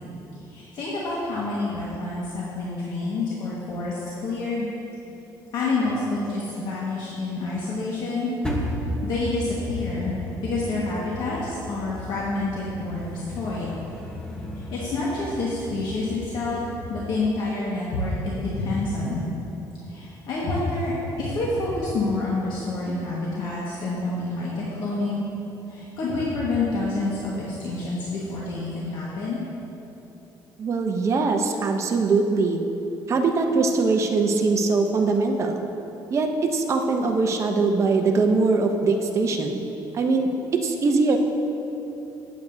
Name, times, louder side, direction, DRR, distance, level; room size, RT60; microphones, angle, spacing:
voice 1, 0.5-4.7 5.5-8.3 9.0-10.2 10.4-13.8 14.7-16.6 16.9-19.3 19.9-25.2 25.7-29.4, left 2 dB, 65° left, -7 dB, 1.7 m, -28 dB
sound 1, 8.4-17.2, left 1 dB, 10° left, 1.1 m, -34 dB
voice 2, 30.6-32.6 33.1-35.6 36.1-39.6 39.9-41.2, right 3 dB, 35° right, 3 dB, 0.8 m, -22 dB
15.5 x 8.1 x 2.8 m, 2.9 s
cardioid pair, 135°, 8 cm